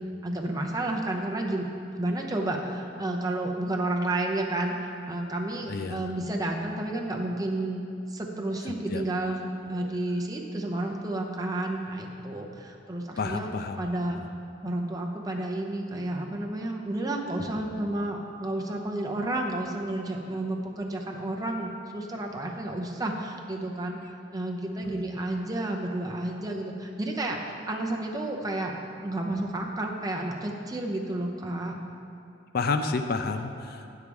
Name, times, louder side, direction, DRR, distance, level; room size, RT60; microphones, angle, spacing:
voice 1, 0.0-1.6 2.0-13.5 13.8-14.2 14.6-24.0 24.3-28.7 29.0-31.8, right 1 dB, 20° right, 1 dB, 0.7 m, -31 dB
voice 2, 5.7-6.1 8.9-9.0 9.8-9.9 13.2-13.8 24.9-25.0 32.5-33.9, left 4 dB, 50° left, 8 dB, 0.4 m, -30 dB
8.8 x 4.7 x 7.0 m, 2.7 s
head